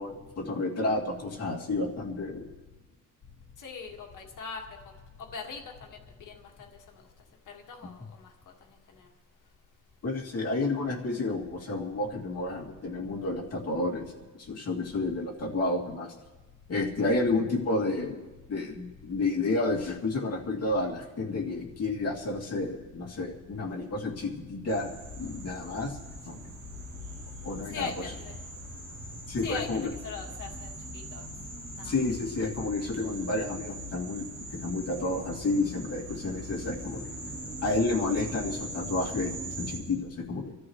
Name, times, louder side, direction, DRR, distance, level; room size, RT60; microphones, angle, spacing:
voice 1, 0.0-2.5 10.0-16.1 16.7-26.0 26.2-26.4 27.4-27.9 29.3-29.9 31.8-37.1 37.6-40.5, left 2 dB, 50° left, -3 dB, 2.6 m, -31 dB
voice 2, 3.6-4.6 5.3-5.6 5.9-6.7 7.5-8.3 9.0-9.1 27.7-28.3 29.4-29.7 30.0-31.3 31.8-31.9, left 5 dB, 70° left, 1 dB, 1.9 m, -40 dB
sound 1, 24.7-39.8, right 1 dB, 35° right, 6.0 m, -41 dB
27.0 x 13.5 x 3.2 m, 1.2 s
wide cardioid pair, 155°, 32 cm